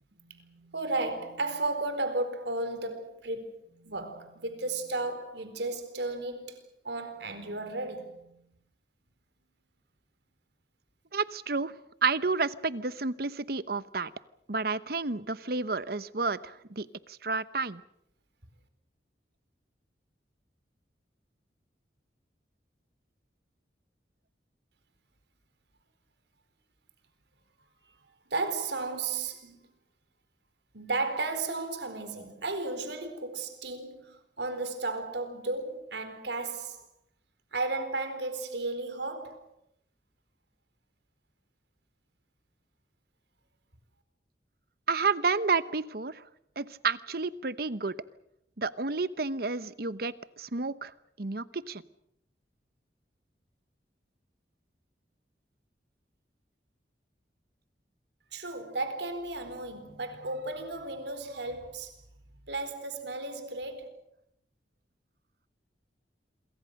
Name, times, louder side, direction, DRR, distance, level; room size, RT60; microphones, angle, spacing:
voice 1, 0.2-8.4 28.3-29.7 30.7-36.9 37.5-39.5 58.3-62.0 62.4-63.9, right 2 dB, 75° right, 4.2 m, -34 dB
voice 2, 11.1-11.7 12.0-14.1 14.5-17.8 44.9-46.2 46.6-47.9 48.6-50.9 51.2-51.8, right 4 dB, 55° right, 1.0 m, -30 dB
27.5 x 23.5 x 6.5 m
head